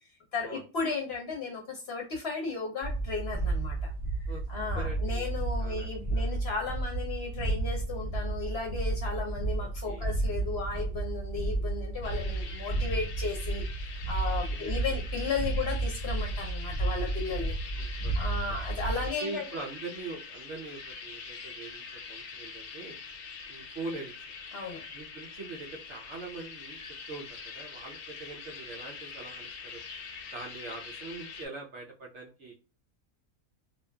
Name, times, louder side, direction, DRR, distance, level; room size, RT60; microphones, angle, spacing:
voice 1, 0.3-3.9 4.5-17.5 18.2-19.5 24.5-24.8, left 4 dB, 55° left, 0 dB, 0.8 m, -35 dB
sound 1, 2.8-19.1, right 2 dB, 10° left, 1.1 m, -32 dB
voice 2, 4.8-5.3 5.6-6.4 9.6-10.1 14.3-14.8 17.8-18.2 18.5-18.6 19.2-23.0 23.5-24.1 24.9-26.8 27.1-29.8 30.3-32.5, right 3 dB, 65° right, -1 dB, 0.8 m, -43 dB
sound 2, 12.0-31.5, left 5 dB, 90° left, 1.1 m, -44 dB
2.7 x 2.4 x 2.2 m, 0.34 s
omnidirectional pair, 1.5 m